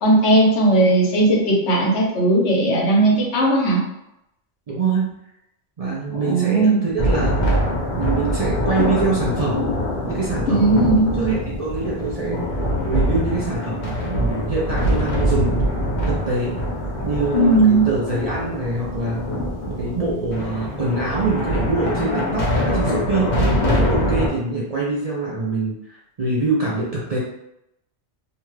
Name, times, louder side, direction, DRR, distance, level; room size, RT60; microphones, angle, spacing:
voice 1, 0.0-3.8 6.1-6.8 10.5-11.1 17.3-17.8, right 2 dB, 75° left, -2 dB, 1.1 m, -17 dB
voice 2, 4.7-5.1 5.8-7.7 8.0-9.7 10.0-10.7 11.2-15.6 16.1-16.6 17.0-19.3 19.7-27.2, right 3 dB, 45° right, -5 dB, 0.5 m, -24 dB
sound 1, 7.0-24.3, equal, 50° left, 0.7 m, -23 dB
2.7 x 2.3 x 3.1 m, 0.84 s
omnidirectional pair, 1.2 m